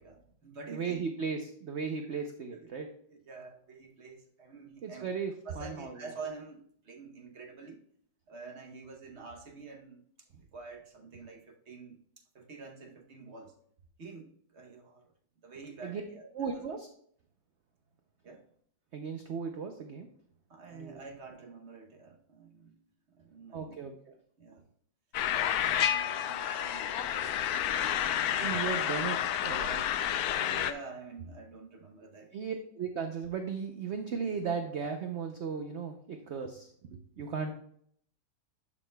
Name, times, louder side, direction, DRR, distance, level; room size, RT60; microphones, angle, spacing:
voice 1, 0.0-1.0 2.1-2.2 2.5-2.7 3.1-5.1 5.4-7.8 8.3-10.0 10.5-13.6 14.0-16.6 18.2-18.4 20.5-22.8 23.1-23.8 24.4-24.7 25.6-28.6 30.6-32.3, right 4 dB, 50° right, 3 dB, 1.0 m, -48 dB
voice 2, 0.7-2.9 4.8-5.9 15.8-16.0 16.3-16.9 18.9-20.1 20.8-21.0 23.5-24.1 28.4-30.2 30.4-30.6 32.3-36.7 37.2-37.5, right 6 dB, 65° right, 5 dB, 0.7 m, -36 dB
sound 1, 25.1-30.7, left 10 dB, 70° left, 1.0 m, -30 dB
11.0 x 6.1 x 2.2 m, 0.64 s
omnidirectional pair, 1.9 m